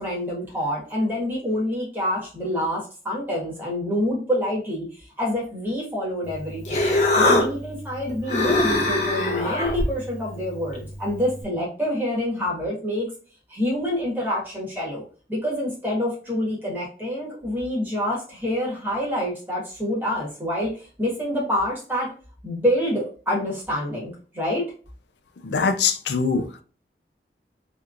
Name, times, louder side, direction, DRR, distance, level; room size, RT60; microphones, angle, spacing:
voice 1, 0.0-6.9 7.2-13.1 13.5-15.0 15.3-22.1 22.4-24.7, left 1 dB, 10° right, 1.4 m, -27 dB
Human voice, 6.2-11.4, left 2 dB, 40° left, 0.8 m, -24 dB
voice 2, 25.4-26.6, left 5 dB, 80° left, 0.5 m, -23 dB
3.3 x 3.0 x 2.4 m
head